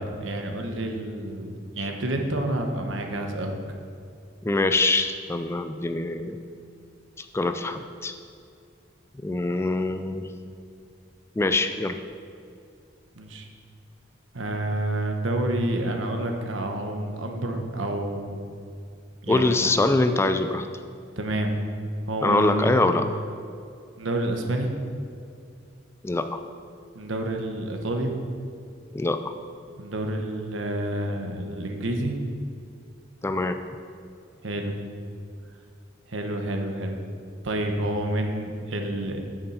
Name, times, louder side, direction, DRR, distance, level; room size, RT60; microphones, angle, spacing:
voice 1, 0.0-3.5 13.2-13.5 14.3-18.4 19.2-19.7 21.2-21.5 22.1-22.8 24.0-24.7 26.9-28.1 29.8-32.1 34.4-34.7 36.1-37.0 37.4-39.2, right 1 dB, 75° right, 3 dB, 1.1 m, -29 dB
voice 2, 4.4-6.4 7.2-8.1 9.2-10.3 11.4-12.0 19.3-20.7 22.2-23.0 26.0-26.4 28.9-29.2 33.2-33.6, left 2 dB, 15° left, 8 dB, 0.3 m, -24 dB
9.0 x 6.8 x 5.6 m, 2.4 s
head